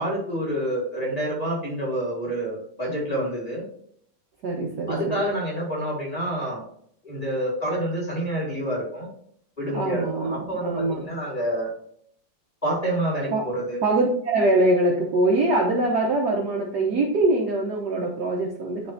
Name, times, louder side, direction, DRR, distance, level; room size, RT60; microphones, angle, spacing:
voice 1, 0.0-3.6 4.9-6.6 7.0-9.1 9.6-11.7 12.6-13.8, right 1 dB, 20° left, -4 dB, 1.7 m, -28 dB
voice 2, 4.4-5.2 9.7-11.1 13.3-13.5 13.8-18.9, right 2 dB, 60° right, -1 dB, 1.2 m, -23 dB
10.0 x 3.5 x 2.7 m, 0.65 s
omnidirectional pair, 2.4 m